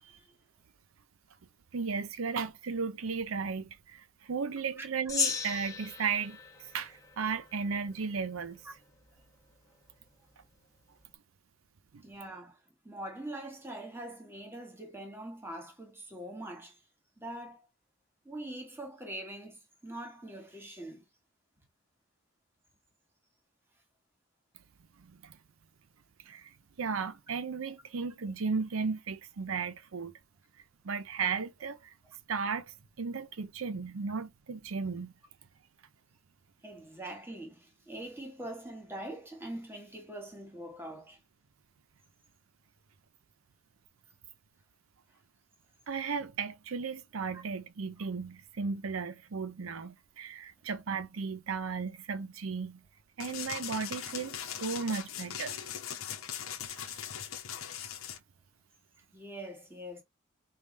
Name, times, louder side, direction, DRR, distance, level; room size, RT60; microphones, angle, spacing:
voice 1, 1.7-8.6 11.9-12.0 25.0-25.4 26.3-30.1 30.8-31.9 32.3-35.1 45.9-52.8 53.2-55.6 56.7-56.8, right 5 dB, 85° right, 0.6 m, -35 dB
Gong, 5.1-7.7, left 4 dB, 15° left, 1.1 m, -35 dB
voice 2, 12.0-12.6 12.8-16.8 17.2-17.7 18.2-21.0 36.6-41.2 59.1-60.0, right 1 dB, 10° right, 1.4 m, -43 dB
sound 1, 53.2-58.2, left 9 dB, 85° left, 0.9 m, -40 dB
5.2 x 2.4 x 3.2 m
head